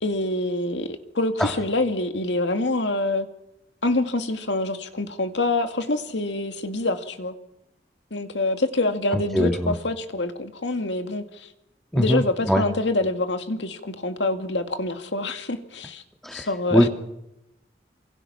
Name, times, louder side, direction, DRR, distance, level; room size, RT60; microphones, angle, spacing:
voice 1, 0.0-3.3 3.8-7.3 8.1-11.5 12.0-16.0 16.3-16.9, left 2 dB, 90° left, 7 dB, 2.2 m, -26 dB
voice 2, 9.1-9.7 11.9-12.6 16.2-16.9, equal, ahead, 4 dB, 1.8 m, -22 dB
27.5 x 24.0 x 5.9 m, 0.88 s
head